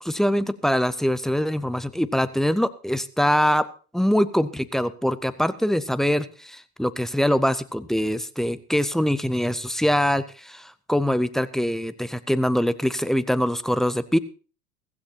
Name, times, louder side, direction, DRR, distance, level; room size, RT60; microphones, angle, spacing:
voice 1, 0.0-3.7 3.9-14.2, equal, ahead, 14 dB, 0.5 m, -23 dB
15.5 x 15.5 x 2.9 m, 0.37 s
hypercardioid pair, 95°, 44 cm